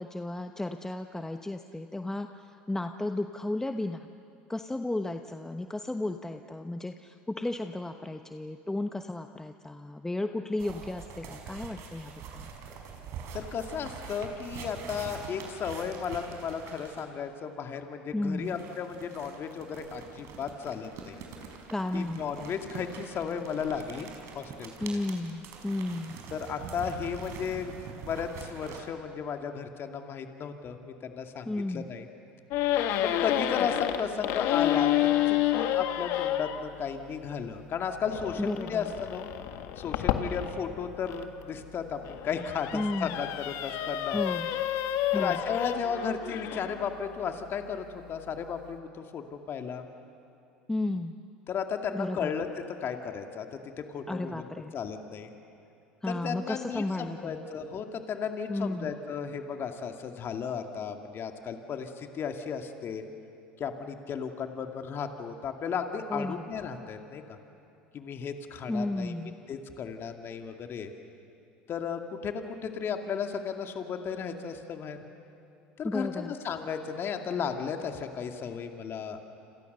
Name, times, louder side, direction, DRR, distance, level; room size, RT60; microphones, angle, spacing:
voice 1, 0.0-4.1 4.5-12.5 18.1-18.5 21.7-22.5 24.8-26.2 31.4-31.9 38.4-38.8 42.7-43.2 44.1-44.5 45.1-45.4 50.7-51.1 51.9-52.3 54.1-54.7 56.0-57.5 58.5-58.9 66.1-66.5 68.7-69.4 75.8-76.3, left 2 dB, 10° left, 7 dB, 1.1 m, -33 dB
sound 1, 10.6-17.2 18.4-28.8, right 6 dB, 60° right, 5.2 m, -44 dB
voice 2, 13.3-21.2 21.9-24.8 26.3-27.7 28.0-32.1 33.0-39.3 39.8-44.2 45.1-49.8 51.5-52.5 52.8-54.4 54.7-55.3 56.1-63.0 63.6-67.4 67.9-69.2 69.5-70.9 71.7-75.0 75.8-79.2, left 6 dB, 45° left, 5 dB, 2.4 m, -34 dB
sound 2, 32.5-36.6 38.1-41.2 41.9-46.8, left 12 dB, 65° left, 1.8 m, -29 dB
29.5 x 27.5 x 6.8 m, 2.7 s
hypercardioid pair, 80°, 5 cm